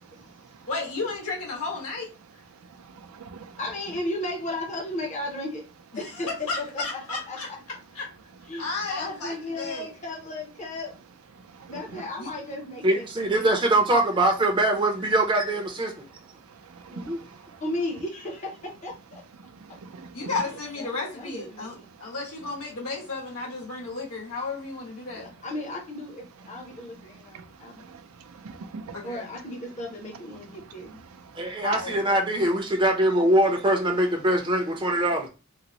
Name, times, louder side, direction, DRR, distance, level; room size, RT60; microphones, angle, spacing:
voice 1, 0.7-2.1 6.0-7.5 7.9-8.1 8.6-9.9 12.2-12.3 20.1-21.7 22.0-25.3 28.9-29.3 31.6-32.2, left 3 dB, 75° left, 1.3 m, -33 dB
voice 2, 2.8-3.6 11.5-12.1 16.5-17.6 19.4-20.3 26.5-29.0 30.8-31.6, right 4 dB, 70° right, 0.4 m, -45 dB
voice 3, 3.6-5.6 5.9-6.3 6.6-7.4 8.5-10.9 11.7-13.0 17.6-19.2 20.8-21.9 25.2-27.8 29.0-31.0, left 1 dB, 30° left, 0.6 m, -35 dB
voice 4, 12.8-16.0 16.9-17.2 31.4-35.3, right 1 dB, 20° right, 0.5 m, -23 dB
3.7 x 2.0 x 2.9 m
head